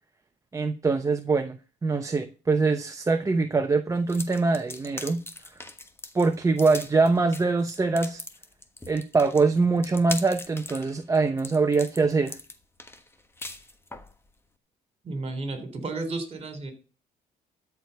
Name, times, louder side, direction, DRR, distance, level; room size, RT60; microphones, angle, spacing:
voice 1, 0.5-5.2 6.1-8.2 8.9-12.4, right 4 dB, 20° right, 6 dB, 0.8 m, -23 dB
sound 1, 4.1-14.1, left 2 dB, 15° left, 1.2 m, -40 dB
voice 2, 15.0-16.7, right 3 dB, 35° right, 8 dB, 3.4 m, -33 dB
13.0 x 4.8 x 8.0 m, 0.36 s
cardioid pair, 110°, 17 cm